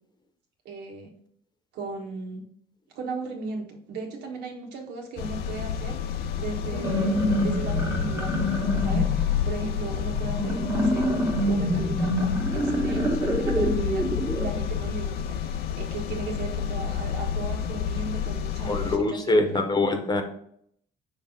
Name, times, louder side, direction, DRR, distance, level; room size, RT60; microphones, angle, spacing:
voice 1, 0.6-1.1 1.7-2.5 2.9-8.3 8.8-19.6, right 4 dB, 80° right, 2 dB, 1.4 m, -37 dB
sound 1, 5.2-19.0, left 8 dB, 70° left, 0.5 m, -30 dB
sound 2, 6.6-14.5, equal, 15° right, 1.3 m, -26 dB
voice 2, 18.6-20.2, left 2 dB, 25° left, 5 dB, 1.0 m, -24 dB
5.8 x 3.4 x 5.1 m, 0.68 s
cardioid pair, 110°, 17 cm